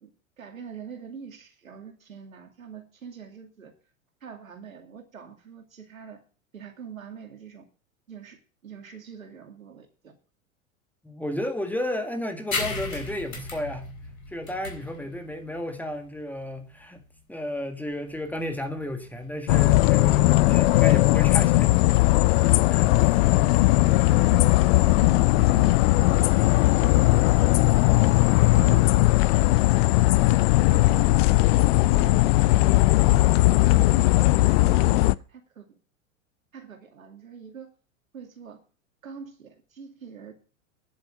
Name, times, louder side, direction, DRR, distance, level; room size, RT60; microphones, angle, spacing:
voice 1, 0.4-3.7 4.2-6.2 6.5-7.7 8.1-10.1 23.3-23.7 24.0-26.3 26.7-27.9 28.5-29.0 29.4-30.3 30.7-32.7 33.0-34.3 34.7-35.8 36.5-37.7 38.1-38.6 39.0-40.3, right 7 dB, 80° right, 2.4 m, -43 dB
voice 2, 11.0-13.9 14.3-17.0 17.3-21.7 22.4-23.2, left 1 dB, 5° left, 1.9 m, -33 dB
sound 1, 12.5-19.6, left 3 dB, 80° left, 4.2 m, -37 dB
sound 2, 19.5-35.1, left 18 dB, 50° left, 0.5 m, -19 dB
10.5 x 8.0 x 7.1 m
figure-of-eight pair, 95°, 40 cm